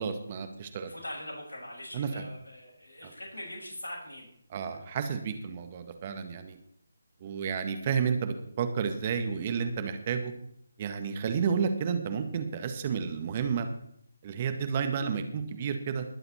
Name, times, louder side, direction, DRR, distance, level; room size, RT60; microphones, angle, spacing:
voice 1, 0.0-0.9 1.9-2.1 4.5-6.6 7.2-10.3 10.8-13.7 14.2-16.0, right 6 dB, 30° right, 7 dB, 1.8 m, -31 dB
voice 2, 0.9-4.3 4.7-4.8 5.1-5.2, left 1 dB, 70° left, -3 dB, 6.4 m, -42 dB
20.5 x 7.8 x 4.4 m, 0.69 s
figure-of-eight pair, 150°, 0 cm